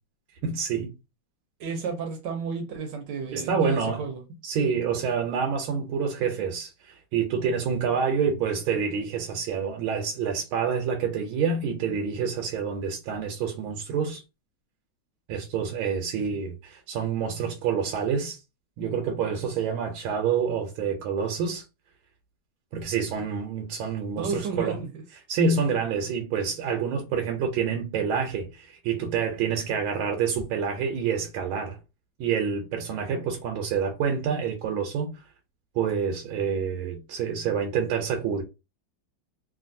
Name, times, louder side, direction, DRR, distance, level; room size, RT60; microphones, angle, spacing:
voice 1, 0.4-0.9 3.3-4.0 4.4-14.2 15.3-18.4 18.8-21.6 22.7-24.8 25.3-31.8 32.2-35.1 35.7-38.4, right 6 dB, 85° right, 1.5 m, -27 dB
voice 2, 1.6-4.2 16.2-16.4 24.2-24.9, right 5 dB, 70° right, 1.2 m, -32 dB
3.3 x 2.5 x 2.6 m
omnidirectional pair, 2.2 m